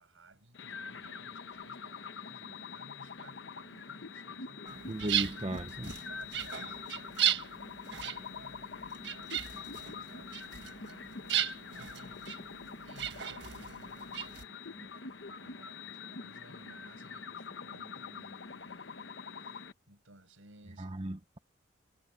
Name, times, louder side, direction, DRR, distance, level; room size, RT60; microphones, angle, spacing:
voice 1, 0.0-5.1 6.1-20.9, right 2 dB, 85° right, 6.6 m, -59 dB
sound 1, 0.5-19.7, left 5 dB, 65° left, 1.0 m, -45 dB
sound 2, 4.7-14.4, right 10 dB, 60° right, 1.4 m, -36 dB
voice 2, 4.9-6.0 20.8-21.4, right 1 dB, 30° right, 0.8 m, -36 dB
head